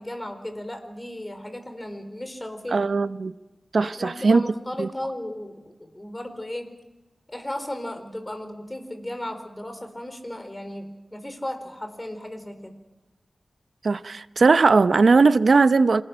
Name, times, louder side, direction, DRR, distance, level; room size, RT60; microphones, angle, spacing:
voice 1, 0.0-2.9 3.8-6.7 7.3-12.7, left 1 dB, 20° left, 4.3 m, -35 dB
voice 2, 2.7-3.3 3.7-4.4 4.8-4.9 13.8-16.0, right 4 dB, 75° right, 0.8 m, -18 dB
28.0 x 19.0 x 6.3 m
wide cardioid pair, 60°, 0 cm